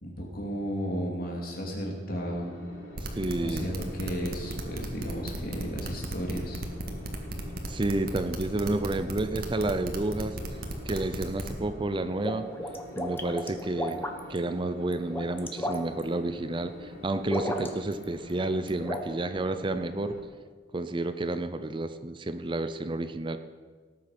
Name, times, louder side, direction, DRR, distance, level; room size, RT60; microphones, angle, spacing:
voice 1, 0.0-2.5 3.4-6.6, equal, 55° left, 0 dB, 3.2 m, -34 dB
sound 1, 2.2-20.2, left 1 dB, 80° left, 3.8 m, -46 dB
sound 2, 2.9-11.6, right 2 dB, 55° right, 1.8 m, -36 dB
voice 2, 3.1-3.7 7.7-10.4 10.9-12.5 13.0-14.0 14.3-20.2 20.7-23.4, right 2 dB, 25° right, 10 dB, 0.6 m, -30 dB
sound 3, 11.9-14.4 14.9-16.0 17.2-18.0 18.3-19.0, left 1 dB, 10° left, 1.2 m, -33 dB
17.5 x 8.7 x 6.0 m, 1.5 s
head